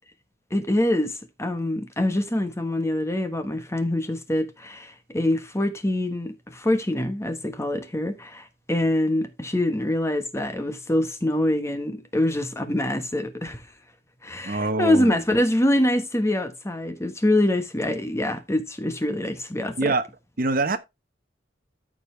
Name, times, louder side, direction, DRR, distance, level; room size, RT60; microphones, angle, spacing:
voice 1, 0.5-13.6 14.2-19.9, left 1 dB, 15° left, 1.2 m, -25 dB
voice 2, 14.4-15.2 19.8-20.0 20.4-20.8, right 2 dB, 50° right, 1.0 m, -24 dB
14.0 x 5.4 x 3.3 m
head